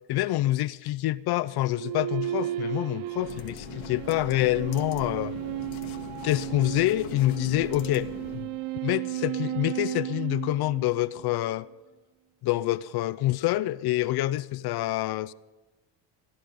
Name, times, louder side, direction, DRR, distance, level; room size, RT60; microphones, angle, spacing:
voice 1, 0.1-5.4 6.2-8.6 8.8-11.7 12.4-15.3, left 16 dB, 55° left, 0.5 m, -27 dB
sound 1, 1.7-11.3, right 14 dB, 85° right, 0.7 m, -34 dB
sound 2, 3.1-8.5, left 9 dB, 75° left, 1.3 m, -42 dB
17.0 x 11.5 x 5.2 m
cardioid pair, 120°, 47 cm